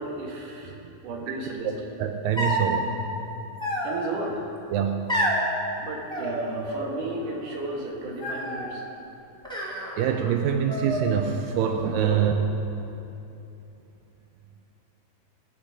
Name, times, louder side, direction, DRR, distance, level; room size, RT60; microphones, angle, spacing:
voice 1, 0.0-0.7 1.0-1.7 3.8-4.4 5.8-8.8 12.0-12.2, right 2 dB, 60° right, -1 dB, 3.1 m, -33 dB
voice 2, 2.0-3.0 4.7-5.1 10.0-12.3, right 8 dB, 80° right, 4 dB, 2.1 m, -25 dB
sound 1, 2.4-2.8 3.6-4.3 5.1-5.5 6.1-6.9 7.2-7.8 8.2-8.7 9.4-10.4 10.7-11.4, equal, ahead, 1.7 m, -29 dB
21.0 x 8.8 x 5.0 m, 2.9 s
omnidirectional pair, 4.6 m